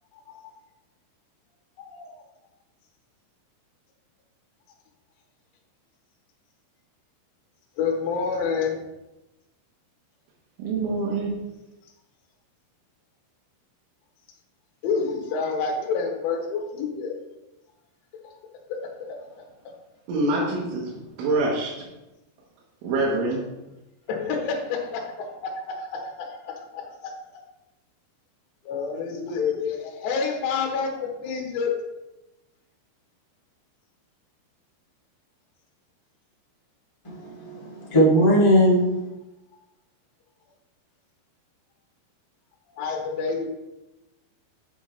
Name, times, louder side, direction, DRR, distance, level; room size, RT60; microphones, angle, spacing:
voice 1, 0.1-0.5 1.8-2.2 7.8-8.9 11.8-11.9 14.8-17.2 18.2-18.3 18.7-19.5 24.1-27.1 28.6-31.7 42.7-43.4, left 5 dB, 70° left, 0 dB, 3.2 m, -29 dB
voice 2, 10.6-11.4 20.1-21.9 22.8-23.5, right 2 dB, 80° right, -5 dB, 3.8 m, -25 dB
voice 3, 37.0-38.9, equal, 25° left, -7 dB, 0.6 m, -19 dB
8.0 x 7.5 x 3.2 m, 1.0 s
omnidirectional pair, 5.7 m